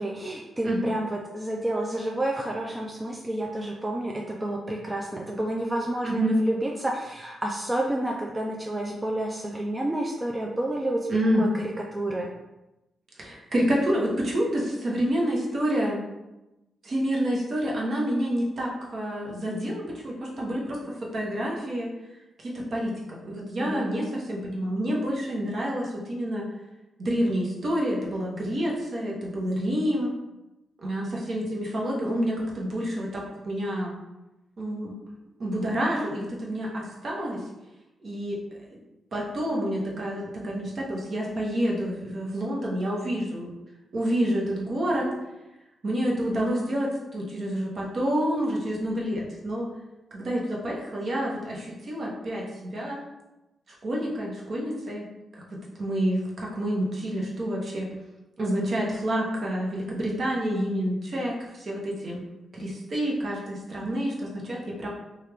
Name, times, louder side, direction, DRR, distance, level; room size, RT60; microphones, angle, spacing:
voice 1, 0.0-11.1 11.4-12.3 23.6-23.9, right 1 dB, 20° right, 0 dB, 0.3 m, -30 dB
voice 2, 6.0-6.4 11.1-11.4 13.2-16.0 16.8-21.9 22.4-26.4 27.0-30.1 30.8-33.9 34.6-35.0 35.4-37.5 38.0-38.4 39.1-43.5 43.9-45.1 45.8-49.7 50.1-53.0 53.8-55.0 55.3-57.9 58.4-62.2 62.5-64.9, equal, 50° right, -3 dB, 0.9 m, -28 dB
3.2 x 2.3 x 3.3 m, 0.98 s
cardioid pair, 95°, 0 cm